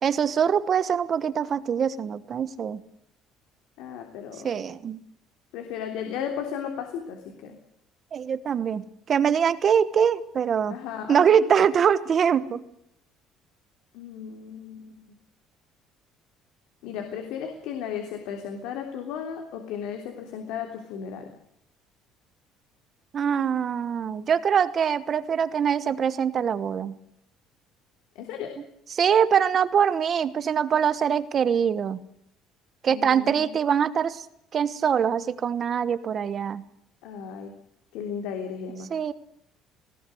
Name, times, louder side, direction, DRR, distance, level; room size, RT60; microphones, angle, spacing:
voice 1, 0.0-2.8 4.4-5.0 8.1-8.8 9.1-10.7 11.1-12.6 23.1-26.9 28.9-32.0 32.8-34.2 34.5-36.6 38.9-39.1, right 7 dB, 30° right, 15 dB, 1.1 m, -23 dB
voice 2, 3.8-4.6 5.5-7.6 10.7-11.5 13.9-15.0 16.8-21.3 28.1-28.5 32.9-33.6 37.0-37.5 37.9-38.9, left 7 dB, 75° left, 4 dB, 3.3 m, -35 dB
19.0 x 18.5 x 7.8 m, 0.76 s
cardioid pair, 175°, 0 cm